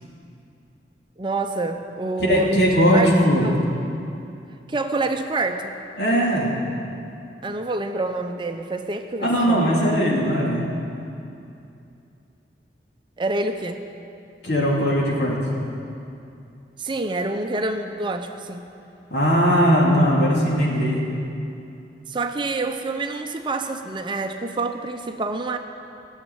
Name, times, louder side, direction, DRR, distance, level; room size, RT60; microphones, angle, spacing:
voice 1, 1.2-3.1 3.4-3.6 4.7-5.8 7.4-9.7 13.2-13.8 16.8-18.7 22.1-25.6, right 2 dB, 25° right, 6 dB, 0.6 m, -27 dB
voice 2, 2.2-3.5 6.0-6.5 9.2-10.6 14.4-15.4 19.1-21.1, equal, 70° left, -4 dB, 3.0 m, -19 dB
16.0 x 7.4 x 9.4 m, 2.7 s
head